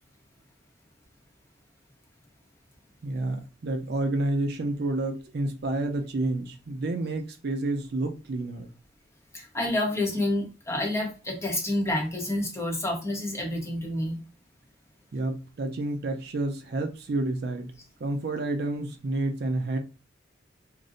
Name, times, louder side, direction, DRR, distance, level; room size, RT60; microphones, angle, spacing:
voice 1, 3.0-8.7 15.1-17.7 18.0-19.8, right 2 dB, 55° right, 0.4 m, -29 dB
voice 2, 9.3-14.2, left 1 dB, 15° left, 0.8 m, -28 dB
2.5 x 2.1 x 3.8 m
head